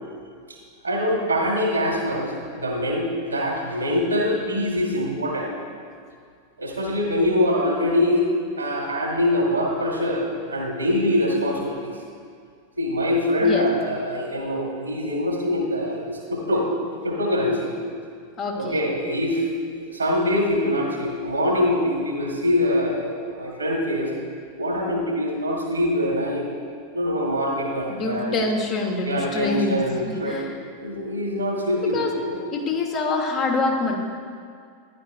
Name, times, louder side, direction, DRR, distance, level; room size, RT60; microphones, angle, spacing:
voice 1, 0.8-5.5 6.6-8.3 8.6-11.9 12.8-16.7 17.0-17.8 18.6-19.4 19.7-24.1 24.6-26.5 26.9-28.4 29.0-30.4 30.8-32.4, left 1 dB, 80° right, 0 dB, 1.8 m, -24 dB
voice 2, 18.4-18.9 27.9-29.8 30.0-30.5 31.7-32.1 32.5-34.0, left 3 dB, 35° left, 1 dB, 1.4 m, -25 dB
14.0 x 10.5 x 2.6 m, 2.2 s
figure-of-eight pair, 90°, 0 cm